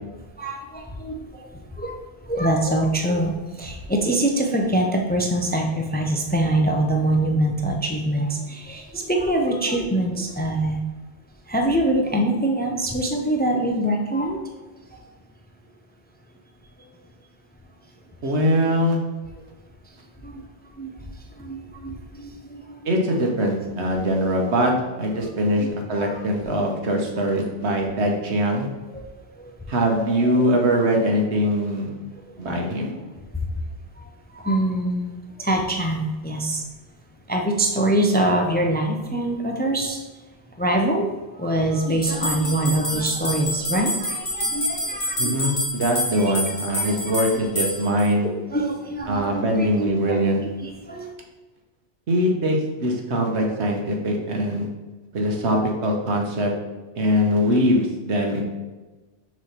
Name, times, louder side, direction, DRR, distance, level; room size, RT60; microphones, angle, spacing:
voice 1, 0.4-2.0 2.3-10.8 11.5-14.4 14.9-15.0 20.2-20.4 20.8-20.9 21.4-22.9 25.2-25.3 25.5-25.7 26.0-26.2 28.9-29.1 29.4-29.5 29.9-30.4 32.4-32.5 34.0-36.6 37.3-40.0 40.6-41.1 41.4-45.6 46.2-46.3 46.7-47.3 48.2-50.2 50.6-51.1, right 1 dB, 15° left, 2 dB, 0.4 m, -24 dB
voice 2, 18.2-19.0 22.8-24.7 25.0-28.7 29.7-31.9 32.4-32.9 45.2-48.3 49.1-50.4 52.1-54.7 55.1-56.5 56.9-58.4, equal, 85° right, 1 dB, 1.4 m, -22 dB
hand operated bell, 42.0-48.1, equal, 75° left, 2.1 m, -27 dB
6.1 x 3.3 x 5.7 m, 1.2 s
omnidirectional pair, 1.1 m